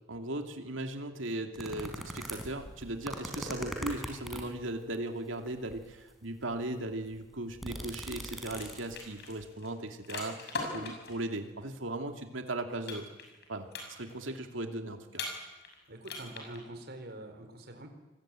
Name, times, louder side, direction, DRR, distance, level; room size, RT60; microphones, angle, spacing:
voice 1, 0.1-13.1 13.5-15.2, right 2 dB, 85° right, 5 dB, 2.7 m, -38 dB
sound 1, 1.6-4.6 5.4-5.9 6.5-6.6 6.9-9.1 9.4-9.5, equal, ahead, 4.7 m, -40 dB
sound 2, 8.0-8.2 8.4-11.2 12.9-13.4 13.7-14.3 15.1-15.7 16.0-16.6, left 3 dB, 60° left, 6.6 m, -40 dB
voice 2, 15.9-17.9, right 1 dB, 55° right, 6 dB, 4.5 m, -45 dB
27.0 x 20.5 x 9.1 m, 1.1 s
head